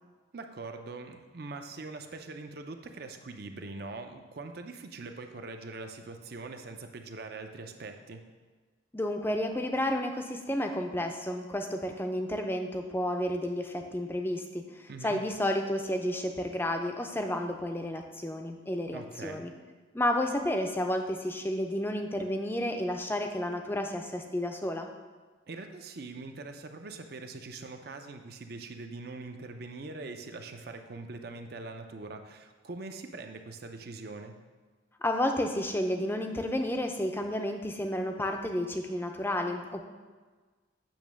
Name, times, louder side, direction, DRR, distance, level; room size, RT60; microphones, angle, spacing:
voice 1, 0.3-8.2 14.9-15.2 18.9-19.5 25.5-34.3, right 3 dB, 50° right, 6 dB, 0.6 m, -42 dB
voice 2, 8.9-19.5 19.9-24.9 35.0-39.8, left 1 dB, 10° left, 4 dB, 0.5 m, -31 dB
8.7 x 3.1 x 6.1 m, 1.4 s
head